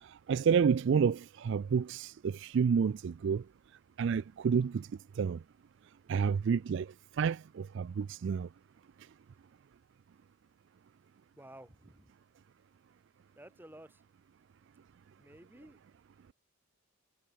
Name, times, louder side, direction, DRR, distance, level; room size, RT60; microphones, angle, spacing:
voice 1, 0.0-3.4 4.0-4.9 5.2-5.4 6.1-8.5, right 6 dB, 55° right, 0.3 m, -30 dB
voice 2, 11.4-12.1 13.4-14.0 15.2-15.8, right 1 dB, 10° right, 5.9 m, -53 dB
head